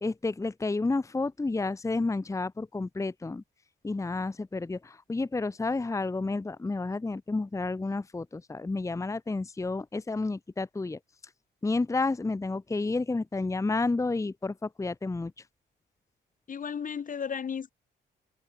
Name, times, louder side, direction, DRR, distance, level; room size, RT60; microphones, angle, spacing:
voice 1, 0.0-3.4 3.8-11.0 11.6-15.3, left 3 dB, 15° left, 0.9 m, -30 dB
voice 2, 16.5-17.7, left 7 dB, 40° left, 1.2 m, -34 dB
cardioid pair, 90°, 20 cm